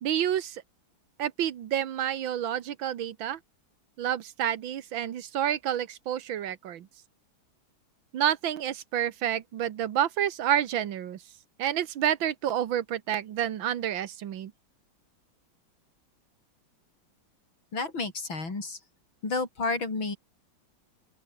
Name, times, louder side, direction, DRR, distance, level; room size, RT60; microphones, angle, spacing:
voice 1, 0.0-0.6 1.2-3.4 4.0-6.9 8.1-11.2 11.6-14.5, right 10 dB, 70° right, 1.9 m, -29 dB
voice 2, 17.7-18.8 19.2-20.2, left 3 dB, 70° left, 6.1 m, -31 dB
open air
omnidirectional pair, 2.2 m